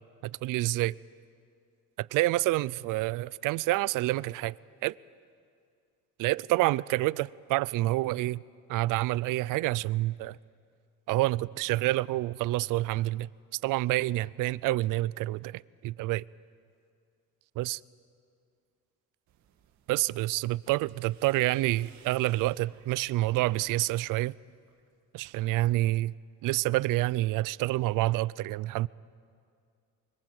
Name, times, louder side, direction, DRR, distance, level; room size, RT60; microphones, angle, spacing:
voice 1, 0.2-1.0 2.0-4.6 4.8-5.0 6.2-8.4 8.7-10.4 11.1-13.3 13.6-16.2 17.6-17.8 19.9-24.3 25.1-26.1 26.4-28.9, right 18 dB, 80° right, 0.5 m, -28 dB
sound 1, 19.3-24.0 24.3-24.9, right 8 dB, 65° right, 2.1 m, -58 dB
25.5 x 24.0 x 7.9 m
cardioid pair, 160°, 31 cm